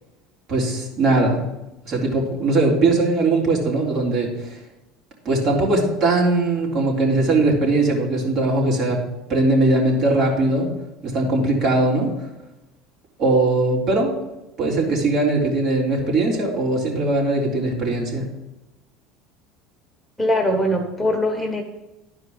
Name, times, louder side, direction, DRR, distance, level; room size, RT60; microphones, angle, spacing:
voice 1, 0.5-1.4 1.9-4.6 5.2-9.0 9.3-10.7 11.0-12.1 13.2-14.1 14.6-18.2, right 2 dB, 50° right, -2 dB, 3.4 m, -20 dB
voice 2, 20.2-21.6, equal, 10° left, 2 dB, 1.4 m, -21 dB
11.5 x 4.9 x 5.2 m, 0.95 s
supercardioid pair, 95°, 0 cm